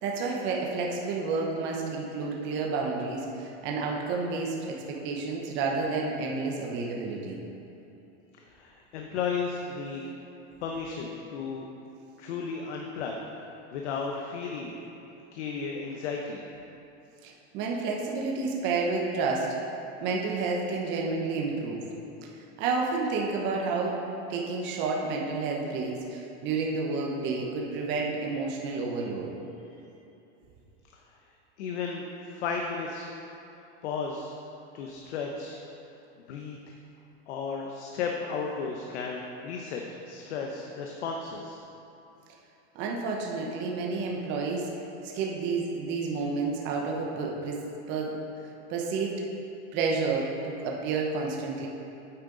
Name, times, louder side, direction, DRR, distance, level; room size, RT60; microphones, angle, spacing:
voice 1, 0.0-7.4 17.2-19.6 20.0-21.8 22.2-22.3 22.6-24.0 24.3-29.3 42.7-44.7 45.0-47.6 47.9-48.2 48.7-49.2 49.7-51.7, right 4 dB, 30° right, -1 dB, 1.1 m, -30 dB
voice 2, 8.4-10.0 10.6-11.7 12.2-14.7 15.3-16.4 31.6-33.1 33.8-34.3 34.7-35.6 36.3-36.6 37.3-41.6, left 5 dB, 75° left, 1 dB, 1.0 m, -34 dB
8.9 x 8.8 x 4.0 m, 2.9 s
supercardioid pair, 165°, 35 cm